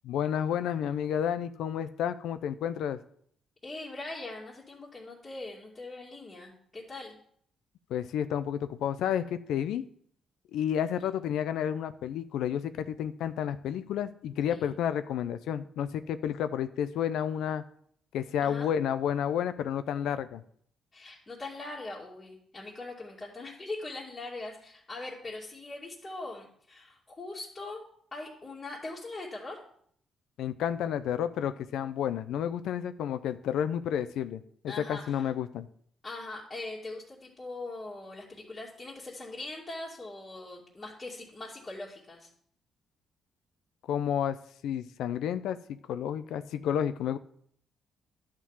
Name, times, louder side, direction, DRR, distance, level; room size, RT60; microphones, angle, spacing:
voice 1, 0.0-3.0 7.9-9.8 10.5-17.6 18.1-20.4 30.4-35.7 43.9-44.4 44.6-47.2, left 9 dB, 80° left, 12 dB, 0.5 m, -31 dB
voice 2, 3.6-7.2 14.5-14.7 18.4-18.7 20.9-27.8 28.1-29.6 34.7-35.3 36.0-42.3, left 2 dB, 25° left, -7 dB, 2.4 m, -41 dB
11.0 x 3.8 x 7.3 m, 0.63 s
cardioid pair, 90°, 0 cm